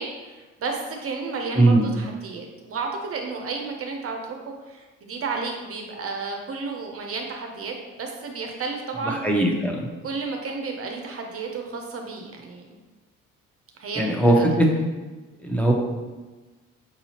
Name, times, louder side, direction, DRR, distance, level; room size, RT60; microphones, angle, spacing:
voice 1, 0.0-9.2 10.0-12.8 13.8-14.5, right 4 dB, 45° right, 2 dB, 0.7 m, -32 dB
voice 2, 9.1-9.9 14.0-14.7 15.4-15.7, right 1 dB, 5° left, 0 dB, 0.8 m, -19 dB
6.1 x 2.7 x 2.9 m, 1.2 s
supercardioid pair, 65°, 32 cm